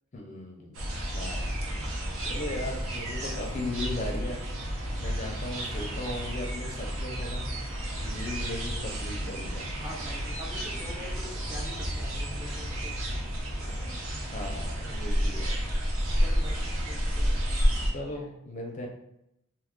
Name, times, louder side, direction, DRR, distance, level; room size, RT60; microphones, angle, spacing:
voice 1, 0.1-0.8 1.1-1.5 2.2-4.4 5.0-9.7 14.3-15.6 17.9-18.9, left 1 dB, 35° left, 1 dB, 0.5 m, -37 dB
sound 1, 0.7-17.9, equal, 85° right, 0.8 m, -31 dB
voice 2, 9.6-12.9 13.7-13.9 16.2-17.3, left 1 dB, 15° right, -2 dB, 0.5 m, -44 dB
2.8 x 2.3 x 3.6 m, 0.82 s
head